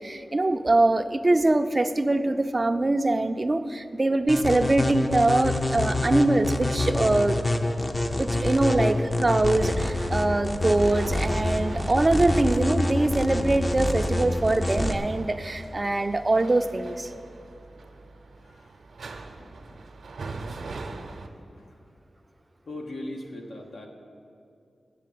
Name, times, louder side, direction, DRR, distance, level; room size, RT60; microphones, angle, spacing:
voice 1, 0.0-7.4 8.2-17.1, right 2 dB, 30° right, 8 dB, 0.5 m, -23 dB
sound 1, 4.3-15.0, left 1 dB, 25° left, 0.6 m, -27 dB
sound 2, 7.4-21.3, right 3 dB, 75° right, 0.7 m, -43 dB
voice 2, 18.4-18.8 19.4-19.8 21.5-21.8 22.7-23.9, left 1 dB, 75° left, 1 dB, 1.1 m, -40 dB
8.4 x 7.2 x 7.7 m, 2.6 s
wide cardioid pair, 100°, 0 cm